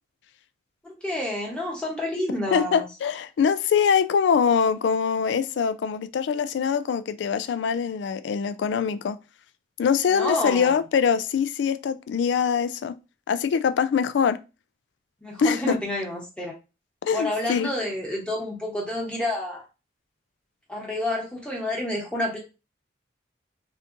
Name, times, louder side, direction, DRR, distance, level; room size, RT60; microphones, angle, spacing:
voice 1, 0.8-2.8 10.1-10.8 15.2-16.5 17.1-19.6 20.7-22.4, left 1 dB, 5° left, 0.9 m, -29 dB
voice 2, 2.5-9.2 9.8-13.0 13.3-14.4 15.4-15.8 17.0-17.7, left 6 dB, 70° left, 0.3 m, -23 dB
3.5 x 2.6 x 2.5 m
head